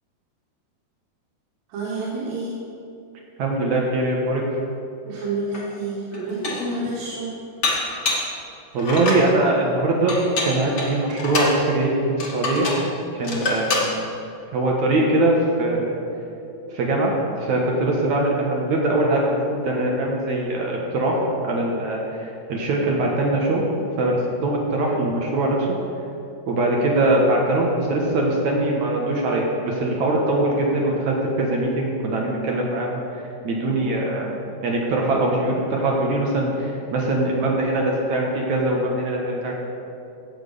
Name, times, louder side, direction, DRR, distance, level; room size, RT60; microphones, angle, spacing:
voice 1, 1.7-2.5 5.1-7.3, right 2 dB, 85° right, -7 dB, 4.0 m, -28 dB
voice 2, 3.4-4.4 8.7-12.7 13.1-14.0 14.5-16.0 16.7-23.6 24.0-25.8 26.5-34.3 34.6-39.5, right 2 dB, 60° right, -1 dB, 2.1 m, -22 dB
Dishes pots and pans, 5.5-5.6 6.1-6.7 7.6-8.3 8.8-9.3 10.1-11.6 12.2-12.9 13.2-13.9, left 2 dB, 45° left, 1.4 m, -25 dB
16.5 x 6.2 x 6.8 m, 2.8 s
omnidirectional pair, 4.8 m